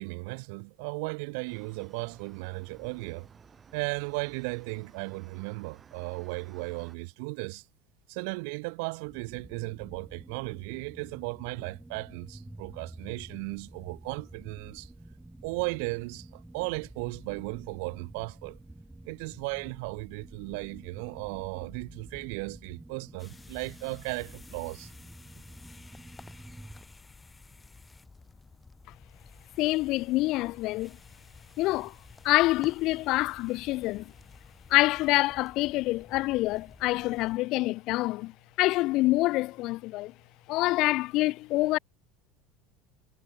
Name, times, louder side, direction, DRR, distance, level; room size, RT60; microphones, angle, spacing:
voice 1, 0.0-3.3 3.7-7.6 8.1-14.9 15.4-18.6 19.1-24.9, right 32 dB, 75° right, 0.5 m, -36 dB
sound 1, 1.5-7.0, right 6 dB, 20° right, 3.5 m, -55 dB
sound 2, 9.1-26.8, right 1 dB, 5° right, 0.8 m, -49 dB
sound 3, 23.2-37.4, left 3 dB, 10° left, 3.1 m, -52 dB
voice 2, 29.6-31.0 31.6-32.0 32.2-34.1 34.7-38.3 38.6-40.1 40.5-41.8, left 19 dB, 55° left, 0.4 m, -26 dB
cardioid pair, 145°, 0 cm